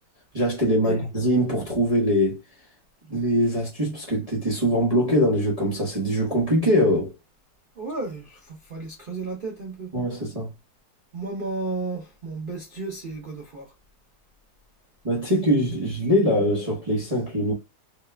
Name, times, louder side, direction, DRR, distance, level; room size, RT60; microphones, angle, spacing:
voice 1, 0.3-2.4 3.1-7.1 9.9-10.5 15.0-17.5, equal, 25° right, 0.8 m, -22 dB
voice 2, 7.8-9.9 11.1-13.7, right 3 dB, 65° right, 0.5 m, -33 dB
4.4 x 2.3 x 3.2 m
omnidirectional pair, 1.9 m